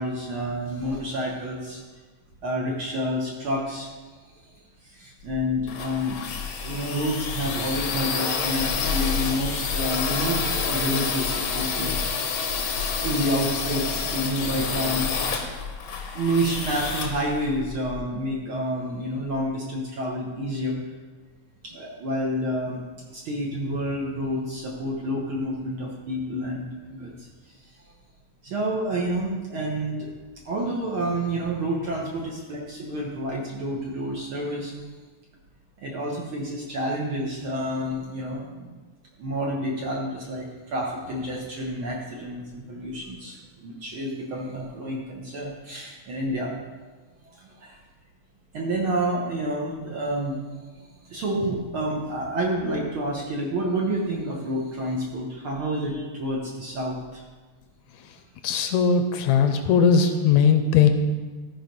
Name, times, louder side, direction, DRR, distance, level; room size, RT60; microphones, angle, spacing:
voice 1, 0.0-1.8 2.4-3.9 4.2-4.5 4.8-6.3 6.6-12.3 12.8-15.2 16.1-21.0 21.6-22.8 23.1-27.9 28.4-30.1 30.4-34.7 35.8-38.7 39.2-46.5 47.2-47.8 48.5-57.2, equal, 60° right, -2 dB, 1.5 m, -29 dB
sound 1, 5.3-18.0, left 5 dB, 65° left, 1.3 m, -28 dB
voice 2, 58.4-60.9, left 6 dB, 80° left, 7 dB, 1.9 m, -19 dB
13.5 x 4.8 x 5.3 m, 1.3 s
omnidirectional pair, 3.4 m